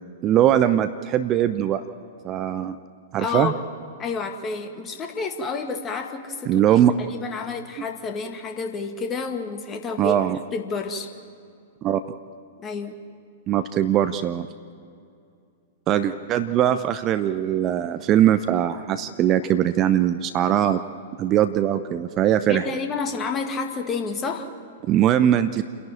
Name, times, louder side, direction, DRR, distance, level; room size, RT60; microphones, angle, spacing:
voice 1, 0.2-1.8 2.2-2.8 3.1-3.5 6.5-6.9 10.0-10.4 11.8-12.0 13.5-14.5 15.9-20.8 21.2-22.6 24.9-25.6, right 11 dB, 30° right, 11 dB, 0.7 m, -21 dB
voice 2, 3.2-3.5 4.0-6.7 7.0-10.2 10.5-11.1 12.6-13.0 22.5-24.5, left 4 dB, 20° left, 4 dB, 2.0 m, -29 dB
29.5 x 11.0 x 9.0 m, 2.5 s
figure-of-eight pair, 100°, 0 cm